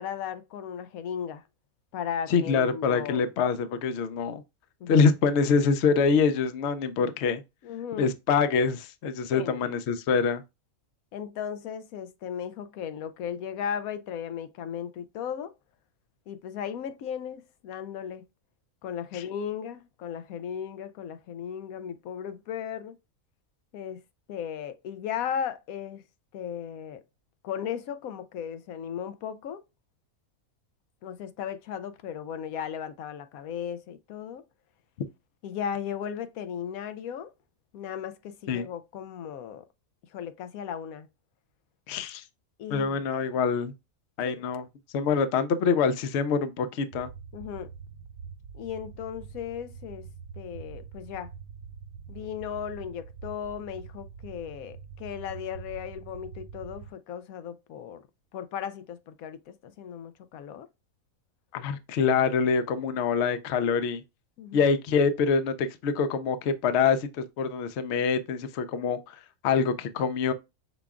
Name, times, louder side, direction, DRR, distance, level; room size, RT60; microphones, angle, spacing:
voice 1, 0.0-1.4 1.9-3.2 4.8-5.0 7.6-8.1 9.3-9.6 11.1-15.5 16.3-18.2 18.8-23.0 23.7-24.0 24.3-26.0 26.3-27.0 27.4-29.6 31.0-34.4 35.4-37.3 37.7-39.6 40.1-41.1 42.6-43.3 44.2-44.4 47.3-47.7 48.5-50.1 50.4-51.3 52.1-58.0 58.3-60.7 64.4-64.6, left 8 dB, 90° left, 1.1 m, -36 dB
voice 2, 2.3-4.4 4.9-7.4 8.0-10.4 19.1-19.2 38.5-38.7 41.9-42.2 42.7-43.7 44.2-44.6 44.9-47.1 61.5-64.0 64.5-70.3, left 5 dB, 60° left, 0.8 m, -25 dB
sound 1, 46.9-56.9, right 6 dB, 80° right, 1.0 m, -44 dB
5.9 x 2.3 x 3.5 m
omnidirectional pair, 1.4 m